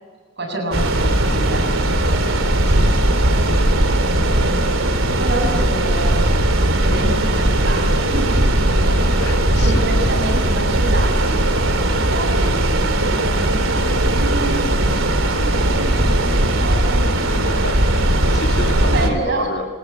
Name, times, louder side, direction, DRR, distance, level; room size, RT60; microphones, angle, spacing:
voice 1, 0.4-4.7 5.2-6.2 6.7-9.2 9.6-11.6 12.0-17.0 18.7-19.5, right 2 dB, 60° right, 4 dB, 7.9 m, -29 dB
sound 1, 0.7-19.1, right 1 dB, 85° right, 3.2 m, -18 dB
voice 2, 9.2-9.7 17.5-19.7, left 2 dB, 55° left, 3 dB, 3.4 m, -31 dB
28.0 x 20.0 x 8.6 m, 1.4 s
head